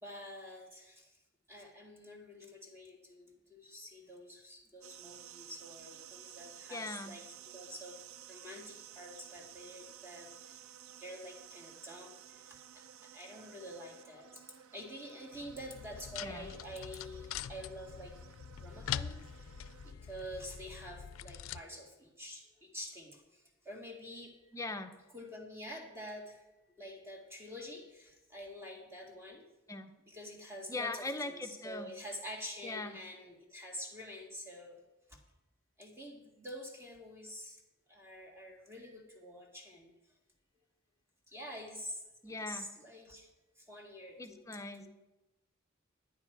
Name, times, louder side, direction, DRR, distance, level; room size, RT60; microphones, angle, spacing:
voice 1, 0.0-1.1 1.5-8.0 8.3-10.3 11.0-14.4 14.7-18.2 18.6-19.2 19.8-24.5 25.1-26.4 26.8-29.4 30.1-34.8 35.1-35.2 35.8-37.6 37.9-39.9 41.3-42.0 42.3-43.3 43.7-44.4 44.8-44.9, equal, 10° right, 1 dB, 1.9 m, -47 dB
sound 1, 4.8-19.9, right 10 dB, 85° right, 0.4 m, -54 dB
voice 2, 6.7-7.1 16.2-16.5 24.5-24.9 29.7-29.9 30.7-31.9 32.6-33.0 42.2-42.7 44.2-44.9, left 2 dB, 15° left, 6 dB, 0.6 m, -40 dB
sound 2, 15.3-21.6, left 9 dB, 85° left, 0.4 m, -44 dB
11.5 x 9.8 x 4.7 m, 1.0 s
head